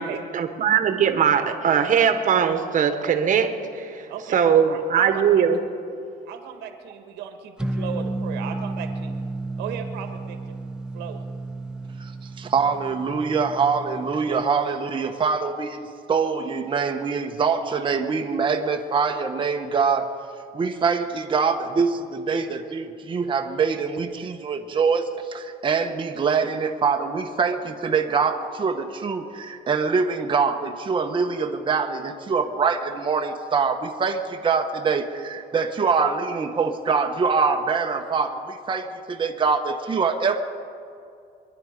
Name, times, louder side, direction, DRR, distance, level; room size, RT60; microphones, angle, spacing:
voice 1, 0.3-4.1 4.3-5.6, right 8 dB, 50° right, 7 dB, 1.4 m, -20 dB
voice 2, 4.1-5.5 6.3-9.2 9.6-10.6 10.9-11.2, right 8 dB, 90° right, 6 dB, 1.5 m, -36 dB
sound 1, 7.6-14.4, right 2 dB, 5° right, 0.9 m, -32 dB
voice 3, 12.4-15.8 16.1-20.1 20.5-40.4, right 5 dB, 30° right, 4 dB, 1.1 m, -24 dB
24.0 x 10.5 x 5.2 m, 2.5 s
cardioid pair, 110°, 17 cm